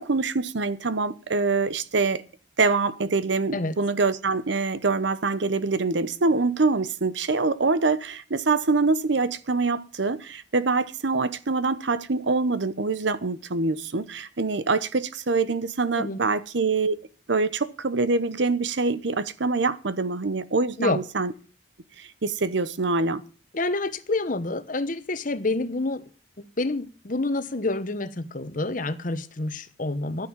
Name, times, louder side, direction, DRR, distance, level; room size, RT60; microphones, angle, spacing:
voice 1, 0.0-2.2 2.6-17.0 17.3-21.3 22.0-23.2, right 3 dB, 65° right, 0.8 m, -25 dB
voice 2, 23.5-26.0 26.4-30.3, left 2 dB, 45° left, 1.1 m, -28 dB
11.5 x 9.8 x 7.3 m
head